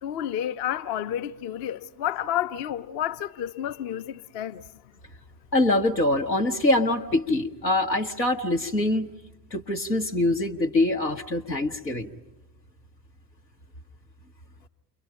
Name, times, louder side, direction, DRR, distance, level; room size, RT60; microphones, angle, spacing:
voice 1, 0.0-4.6, left 11 dB, 50° left, 0.9 m, -30 dB
voice 2, 5.5-9.1 9.5-12.1, left 2 dB, 90° left, 1.1 m, -24 dB
29.5 x 23.0 x 5.7 m
figure-of-eight pair, 60°, 50 cm